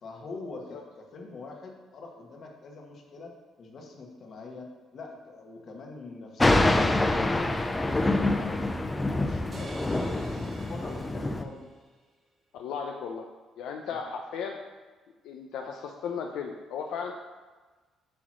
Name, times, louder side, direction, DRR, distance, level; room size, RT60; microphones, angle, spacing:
voice 1, 0.0-3.3 3.6-7.5 7.7-11.6, left 3 dB, 45° left, 1 dB, 1.2 m, -44 dB
Thunder, 6.4-11.4, left 2 dB, 15° left, 0.4 m, -26 dB
sound 1, 9.5-11.9, right 2 dB, 35° right, 1.0 m, -48 dB
voice 2, 12.5-13.3 13.6-14.6 15.2-17.1, left 6 dB, 80° left, 2 dB, 0.5 m, -35 dB
8.3 x 3.0 x 6.1 m, 1.3 s
cardioid pair, 130°, 0 cm